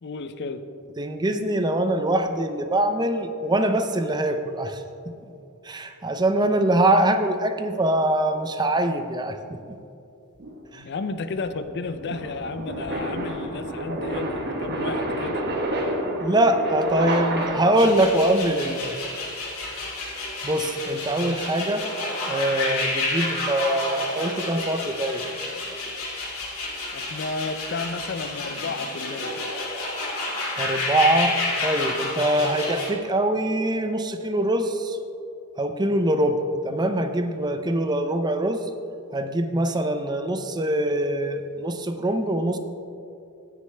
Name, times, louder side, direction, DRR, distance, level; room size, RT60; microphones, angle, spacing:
voice 1, 0.0-0.6 10.8-15.6 26.9-29.5, left 3 dB, 50° left, 10 dB, 0.5 m, -32 dB
voice 2, 1.0-4.8 5.6-9.8 10.7-10.8 16.2-19.0 20.4-21.9 22.3-25.2 30.6-31.4 31.6-35.0 35.6-38.6 39.1-42.6, right 1 dB, 20° right, 7 dB, 0.5 m, -23 dB
sound 1, 10.4-18.0, right 1 dB, 50° right, 1.2 m, -29 dB
sound 2, 17.7-32.9, left 2 dB, 70° left, 2.6 m, -30 dB
17.0 x 6.5 x 3.3 m, 2.6 s
head